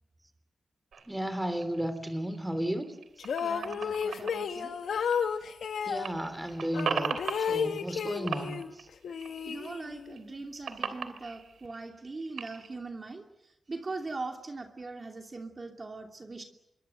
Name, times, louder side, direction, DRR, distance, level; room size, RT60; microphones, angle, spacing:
sound 1, 0.9-5.7 5.9-8.0 8.3-9.7 10.1-12.7, right 6 dB, 85° right, 3.0 m, -38 dB
voice 1, 1.1-2.9 5.9-7.1 7.5-8.6, equal, 10° right, 10 dB, 3.3 m, -33 dB
sound 2, 3.2-6.1 6.7-8.7 9.0-10.1, left 7 dB, 90° left, 1.6 m, -32 dB
voice 2, 3.4-4.7 9.5-16.4, right 3 dB, 35° right, 3 dB, 2.7 m, -41 dB
27.0 x 23.0 x 8.0 m, 0.88 s
wide cardioid pair, 105°, 0 cm